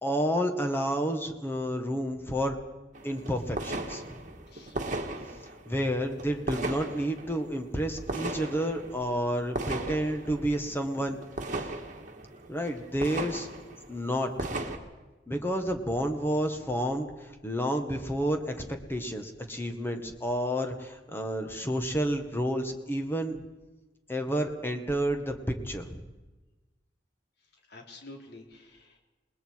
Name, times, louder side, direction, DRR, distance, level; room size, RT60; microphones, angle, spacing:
voice 1, 0.0-2.6 3.0-4.4 5.7-11.2 11.5-11.7 12.5-13.5 13.9-14.7 15.3-23.4 24.1-25.3 25.6-26.0, equal, 10° left, 5 dB, 1.7 m, -30 dB
sound 1, 2.9-14.8, right 2 dB, 45° right, 1.9 m, -37 dB
voice 2, 4.5-4.8 27.7-29.0, left 2 dB, 60° left, 1 dB, 3.8 m, -49 dB
28.0 x 20.5 x 4.8 m, 1.1 s
head